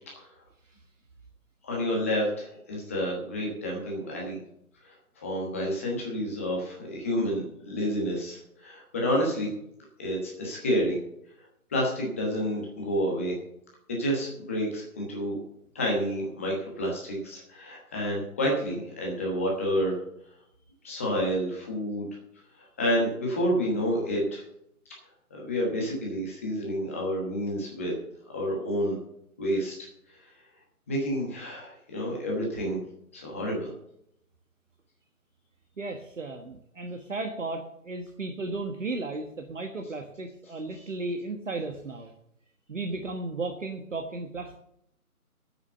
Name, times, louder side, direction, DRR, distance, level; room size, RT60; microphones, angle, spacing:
voice 1, 1.6-4.4 5.2-9.5 10.0-11.0 11.7-13.4 13.9-15.4 15.7-20.0 20.8-22.1 22.8-24.4 25.3-27.9 28.3-28.9 29.4-29.7 30.9-32.8 33.1-33.7, equal, 10° left, -2 dB, 1.2 m, -29 dB
voice 2, 35.8-42.1 42.7-44.6, right 3 dB, 55° right, 4 dB, 1.5 m, -35 dB
9.4 x 8.0 x 7.8 m, 0.75 s
figure-of-eight pair, 155°, 44 cm